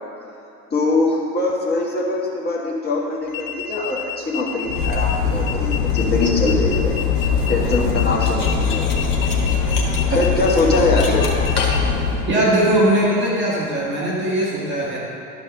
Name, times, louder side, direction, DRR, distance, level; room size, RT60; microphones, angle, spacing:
voice 1, 0.7-6.9 7.5-8.8 10.1-11.2, left 2 dB, 20° left, -4 dB, 1.6 m, -22 dB
sound 1, 3.3-11.8, left 9 dB, 35° left, 0.6 m, -31 dB
Cutlery silverware, 4.7-12.4, left 5 dB, 70° left, 1.5 m, -21 dB
voice 2, 12.3-15.0, right 1 dB, 20° right, -6 dB, 2.1 m, -19 dB
12.0 x 4.9 x 5.2 m, 2.8 s
figure-of-eight pair, 80°, 48 cm